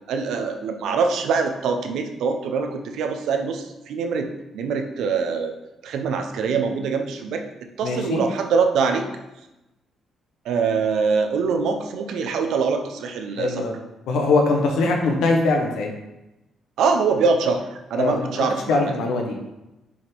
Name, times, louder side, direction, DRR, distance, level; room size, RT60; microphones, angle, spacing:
voice 1, 0.1-5.5 5.8-7.4 7.8-9.0 10.4-13.6 16.8-18.9, right 5 dB, 80° right, 5 dB, 0.7 m, -23 dB
voice 2, 7.8-8.2 13.4-13.7 14.1-15.9 18.0-19.4, left 3 dB, 80° left, 2 dB, 1.2 m, -22 dB
6.2 x 3.7 x 4.6 m, 0.97 s
cardioid pair, 90°, 0 cm